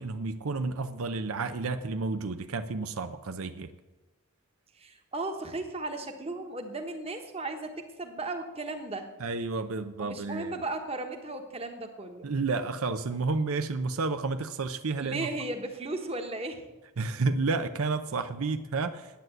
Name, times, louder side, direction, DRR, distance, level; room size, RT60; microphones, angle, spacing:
voice 1, 0.0-3.7 9.2-10.6 12.2-15.3 17.0-19.2, right 3 dB, 75° right, 9 dB, 0.6 m, -31 dB
voice 2, 4.7-9.1 10.0-12.3 15.0-16.6, right 2 dB, 25° right, 5 dB, 1.2 m, -36 dB
10.5 x 9.2 x 7.8 m, 1.1 s
head